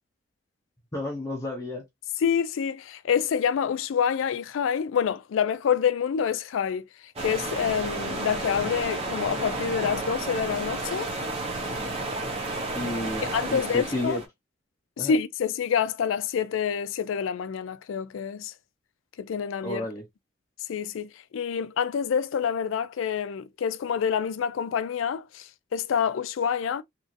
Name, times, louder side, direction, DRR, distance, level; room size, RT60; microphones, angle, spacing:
voice 1, 0.9-1.8 12.8-14.2 15.0-15.1 19.6-20.0, left 1 dB, 15° left, 0.6 m, -32 dB
voice 2, 2.2-11.1 13.2-14.2 15.0-18.5 19.2-19.9 20.7-26.8, left 7 dB, 85° left, 0.3 m, -27 dB
sound 1, 7.2-14.3, right 2 dB, 30° right, 0.7 m, -32 dB
3.0 x 2.5 x 2.6 m
head